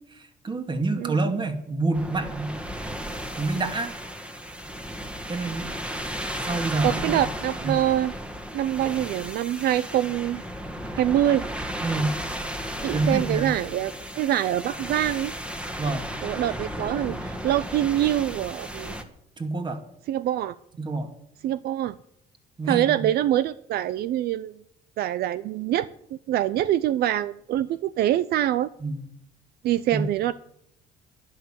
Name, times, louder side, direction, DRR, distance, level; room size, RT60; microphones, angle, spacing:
voice 1, 0.1-2.6 3.4-3.9 5.3-5.8 6.4-7.2 7.6-7.8 11.8-12.2 12.9-13.5 15.8-16.1 19.4-19.8 20.8-21.1 22.6-23.1 28.8-29.0 29.9-30.0, right 3 dB, 25° right, 6 dB, 2.3 m, -27 dB
sound 1, 1.9-19.0, equal, 5° right, 1.8 m, -34 dB
voice 2, 6.8-8.1 8.5-10.4 10.9-11.5 12.8-15.3 16.2-18.9 20.1-20.5 21.4-22.0 22.7-24.5 25.0-25.9 26.3-28.7 29.6-30.3, right 12 dB, 70° right, 16 dB, 0.5 m, -25 dB
11.5 x 11.5 x 7.4 m, 0.72 s
cardioid pair, 110°, 17 cm